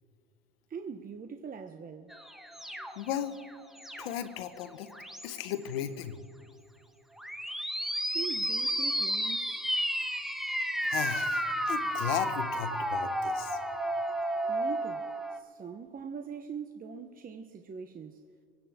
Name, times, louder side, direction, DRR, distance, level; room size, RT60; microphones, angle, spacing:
voice 1, 0.7-2.1 8.1-9.5 14.5-18.2, right 6 dB, 30° right, 1.0 m, -42 dB
sound 1, 2.1-4.3 4.9-5.5 7.2-15.4, equal, ahead, 1.3 m, -32 dB
voice 2, 3.0-3.3 4.0-4.9 5.2-6.2 10.8-13.6, left 9 dB, 90° left, 1.2 m, -35 dB
25.5 x 9.9 x 3.7 m
supercardioid pair, 85°, 29 cm